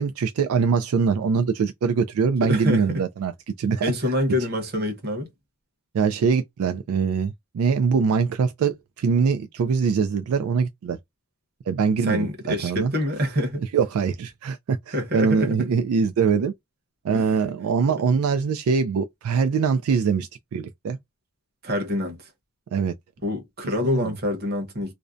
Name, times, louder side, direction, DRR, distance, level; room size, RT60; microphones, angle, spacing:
voice 1, 0.0-3.3 3.6-3.9 5.9-11.0 11.7-12.9 13.7-16.5 17.0-21.0 22.7-22.9 23.6-24.1, right 5 dB, 75° right, 0.3 m, -23 dB
voice 2, 2.5-3.0 3.8-5.3 12.0-13.6 14.9-15.6 17.1-17.3 21.6-22.2 23.2-24.9, left 1 dB, 45° right, 0.9 m, -26 dB
2.5 x 2.1 x 2.3 m
head